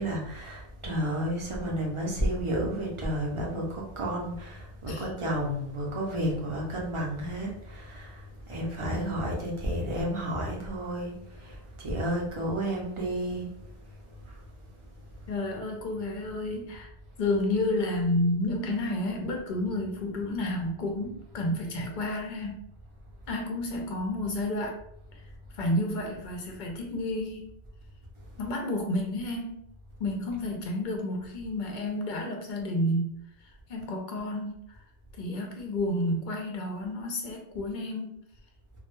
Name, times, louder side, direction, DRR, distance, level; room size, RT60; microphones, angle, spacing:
voice 1, 0.0-13.5 14.0-14.7, right 1 dB, 40° right, -2 dB, 0.5 m, -32 dB
voice 2, 15.3-16.9 17.2-22.7 23.3-24.8 25.5-27.5 28.4-29.6 30.0-33.2 33.7-34.7 35.2-38.2, left 1 dB, 60° left, 1 dB, 0.6 m, -30 dB
2.1 x 2.1 x 3.0 m, 0.77 s
omnidirectional pair, 1.0 m